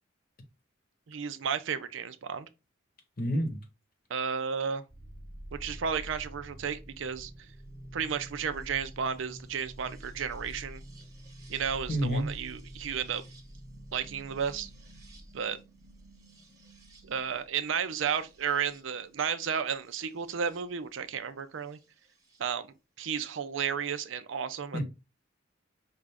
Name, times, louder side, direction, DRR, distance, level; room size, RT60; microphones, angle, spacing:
voice 1, 1.1-2.5 4.1-4.8 5.5-7.3 7.9-10.8 11.5-13.2 13.9-14.7 15.3-15.6 17.0-21.8 22.4-22.7 23.0-24.8, right 7 dB, 70° right, 0.5 m, -33 dB
voice 2, 3.2-3.6 11.9-12.3 24.7-24.8, equal, 50° left, 1.0 m, -28 dB
sound 1, 4.9-20.6 21.8-22.4, right 1 dB, 20° right, 1.0 m, -48 dB
5.5 x 2.5 x 3.4 m
head